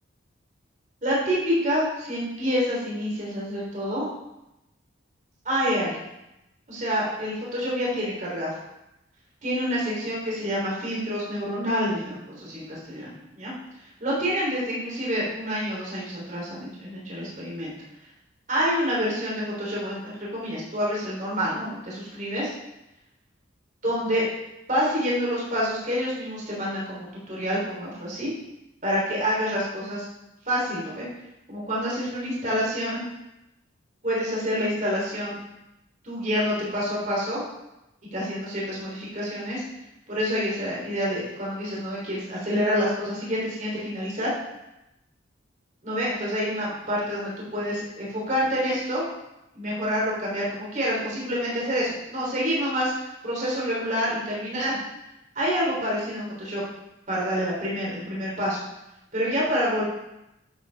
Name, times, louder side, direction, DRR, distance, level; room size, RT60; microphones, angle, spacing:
voice 1, 1.0-4.1 5.5-5.9 6.7-8.5 9.4-13.5 14.0-17.7 18.5-22.5 23.8-24.2 24.7-28.3 28.8-30.1 30.5-31.1 31.5-33.1 34.0-35.3 36.0-37.4 38.1-39.6 40.1-44.3 45.8-49.0 49.6-54.8 55.4-56.6 57.1-58.6 59.1-59.9, equal, 40° right, -5 dB, 3.6 m, -27 dB
11.5 x 8.1 x 3.5 m, 0.91 s
head